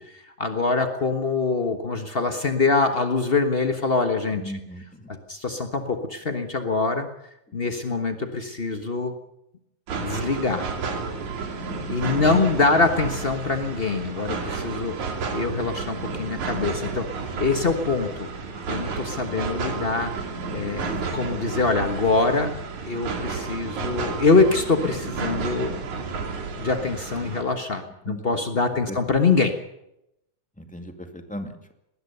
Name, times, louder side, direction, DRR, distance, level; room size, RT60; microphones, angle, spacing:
voice 1, 0.0-4.5 5.1-7.1 7.5-9.1 9.9-10.7 11.9-14.9 15.3-17.1 17.4-18.3 18.7-20.1 20.5-22.5 22.8-25.8 26.5-29.5, left 4 dB, 85° left, 6 dB, 0.5 m, -24 dB
voice 2, 4.3-5.1 11.7-12.4 19.3-19.4 20.8-21.2 28.0-28.4 28.9-29.0 30.6-31.7, equal, 5° left, 5 dB, 1.6 m, -38 dB
sound 1, 9.9-27.4, right 4 dB, 75° right, 3.9 m, -31 dB
19.5 x 19.5 x 6.8 m, 0.83 s
omnidirectional pair, 3.4 m